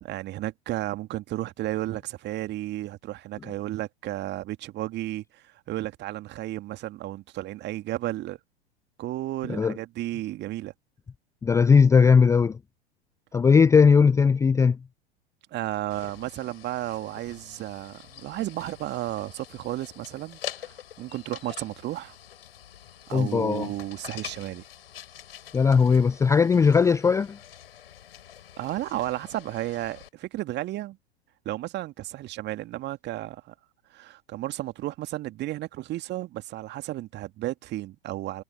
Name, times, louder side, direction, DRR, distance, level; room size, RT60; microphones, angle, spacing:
voice 1, 0.0-8.4 9.0-10.7 15.5-22.2 23.1-24.6 28.6-31.0 31.5-33.5 33.9-38.4, right 15 dB, 35° right, 2.3 m, -33 dB
voice 2, 11.4-12.6 13.3-14.8 23.1-23.7 25.5-27.4, left 5 dB, 10° left, 0.5 m, -18 dB
sound 1, 15.9-30.1, left 10 dB, 65° left, 5.8 m, -45 dB
figure-of-eight pair, 90°, 32 cm